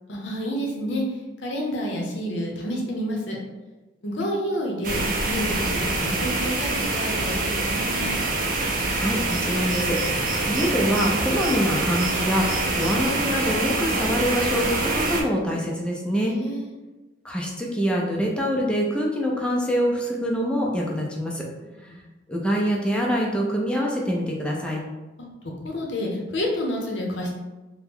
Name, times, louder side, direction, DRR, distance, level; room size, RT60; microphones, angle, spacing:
voice 1, 0.1-1.0 1.4-3.4 4.0-8.2 16.1-16.8 21.6-22.0 25.4-27.3, equal, 70° left, -1 dB, 0.7 m, -29 dB
Car Fly by, 4.8-15.2, right 2 dB, 50° right, 0.5 m, -25 dB
voice 2, 8.9-16.3 17.2-21.4 22.3-24.8, equal, 5° left, -2 dB, 0.5 m, -25 dB
2.8 x 2.2 x 3.5 m, 1.2 s
head